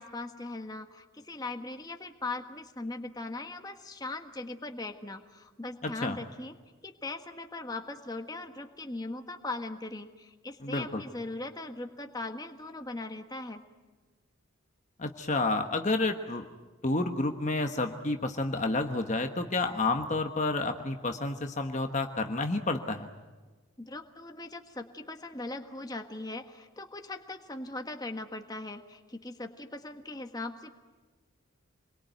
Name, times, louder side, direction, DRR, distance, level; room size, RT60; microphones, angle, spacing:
voice 1, 0.0-6.5 6.8-13.6 23.8-30.8, left 2 dB, 20° left, 5 dB, 1.5 m, -39 dB
voice 2, 5.8-6.2 10.6-11.0 15.0-16.4 16.8-23.1, left 2 dB, 35° left, 5 dB, 1.3 m, -30 dB
28.0 x 22.5 x 9.3 m, 1.3 s
head